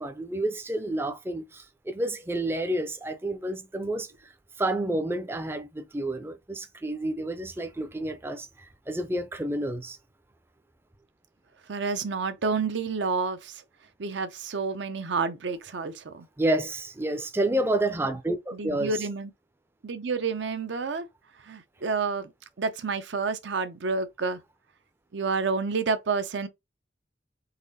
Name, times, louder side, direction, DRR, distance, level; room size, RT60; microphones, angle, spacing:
voice 1, 0.0-10.0 16.4-19.0, right 1 dB, 10° right, 0.4 m, -30 dB
voice 2, 11.7-13.6 14.0-16.3 18.5-19.3 19.8-21.1 21.4-22.3 22.6-24.4 25.1-26.5, right 4 dB, 75° right, 0.6 m, -29 dB
4.1 x 2.9 x 4.0 m
head